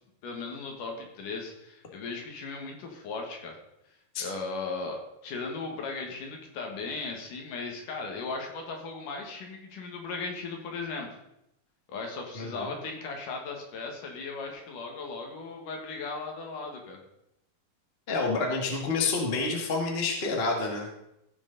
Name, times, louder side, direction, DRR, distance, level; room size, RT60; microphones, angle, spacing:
voice 1, 0.2-3.6 4.2-11.1 11.9-17.0, left 4 dB, 65° left, 2 dB, 3.0 m, -37 dB
voice 2, 12.3-12.7 18.1-20.9, left 3 dB, 40° left, 1 dB, 0.8 m, -28 dB
16.0 x 6.5 x 4.0 m, 0.83 s
omnidirectional pair, 4.3 m